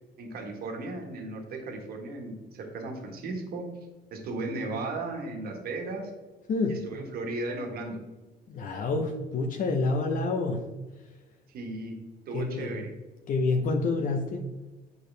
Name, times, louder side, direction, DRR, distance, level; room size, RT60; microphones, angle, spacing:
voice 1, 0.2-3.7 4.1-6.1 6.7-8.0 11.5-12.0 12.3-12.9, right 2 dB, 65° right, 3 dB, 1.5 m, -35 dB
voice 2, 6.5-6.9 8.5-10.7 12.3-12.8 13.3-14.5, left 3 dB, 55° left, 2 dB, 0.8 m, -28 dB
8.4 x 4.8 x 3.3 m, 1.2 s
cardioid pair, 110°, 17 cm